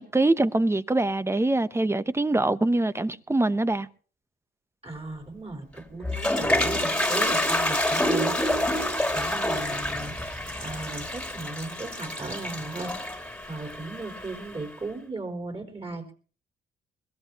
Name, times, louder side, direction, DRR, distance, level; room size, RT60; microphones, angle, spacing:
voice 1, 0.0-3.9, right 2 dB, 15° right, 0.7 m, -24 dB
voice 2, 4.8-8.4 9.1-12.9 13.5-16.1, right 3 dB, 30° right, 4.2 m, -37 dB
Toilet flush, 5.8-14.6, left 1 dB, 5° left, 2.2 m, -27 dB
22.0 x 17.0 x 2.9 m
cardioid pair, 90°, 20 cm